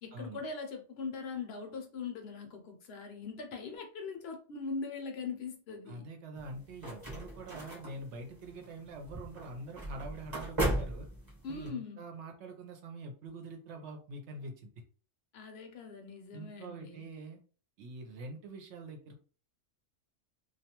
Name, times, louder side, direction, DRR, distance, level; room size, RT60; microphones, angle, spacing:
voice 1, 0.0-6.1 11.4-12.0 15.3-17.0, left 4 dB, 65° left, 0.7 m, -41 dB
voice 2, 5.9-11.1 11.5-14.7 16.3-17.4 17.8-19.1, right 2 dB, 70° right, 0.9 m, -45 dB
sound 1, 6.4-11.7, right 1 dB, 20° right, 0.9 m, -37 dB
2.3 x 2.1 x 2.8 m
omnidirectional pair, 1.2 m